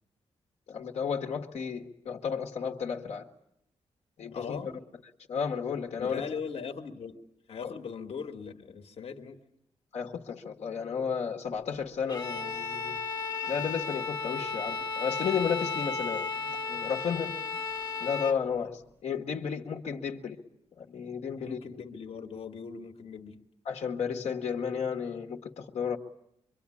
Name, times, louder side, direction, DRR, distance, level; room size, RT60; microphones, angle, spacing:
voice 1, 0.7-3.3 4.2-4.7 5.3-6.2 7.6-7.7 9.9-13.0 13.5-17.3 18.0-20.4 20.8-21.6 23.7-26.0, left 6 dB, 80° left, 3 dB, 1.8 m, -33 dB
voice 2, 4.3-4.7 6.0-7.2 7.5-9.4 21.4-23.4, left 6 dB, 65° left, 6 dB, 1.8 m, -39 dB
Bowed string instrument, 12.1-18.5, left 4 dB, 35° left, 1.4 m, -34 dB
24.5 x 24.5 x 9.9 m, 0.79 s
wide cardioid pair, 165°, 11 cm